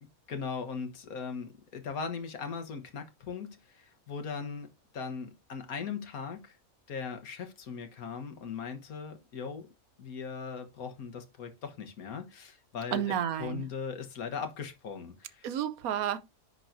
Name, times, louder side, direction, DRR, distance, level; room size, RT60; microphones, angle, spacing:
voice 1, 0.0-4.7 4.9-6.6 6.9-9.7 10.0-13.1 13.4-15.5, left 5 dB, 80° left, 1.6 m, -39 dB
voice 2, 12.9-13.6 15.4-16.2, right 10 dB, 75° right, 1.1 m, -31 dB
10.0 x 3.8 x 2.6 m
omnidirectional pair, 1.5 m